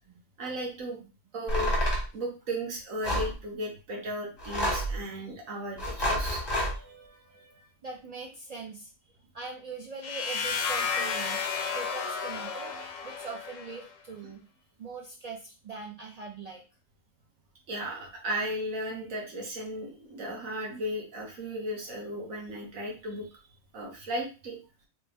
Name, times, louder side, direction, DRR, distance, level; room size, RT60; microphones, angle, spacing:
voice 1, 0.4-1.0 1.3-1.7 2.1-7.6 17.7-23.4 23.7-24.6, equal, 90° right, -1 dB, 1.5 m, -36 dB
sound 1, 1.5-2.1 3.0-3.3 4.4-5.0 5.8-6.7, equal, 20° left, 1.2 m, -28 dB
voice 2, 7.8-8.9 9.3-11.4 11.7-12.7 13.0-14.4 14.8-16.6, right 4 dB, 70° right, 1 dB, 0.3 m, -41 dB
sound 2, 10.0-13.9, left 6 dB, 85° left, 1.0 m, -32 dB
3.3 x 3.0 x 3.4 m, 0.33 s
omnidirectional pair, 1.3 m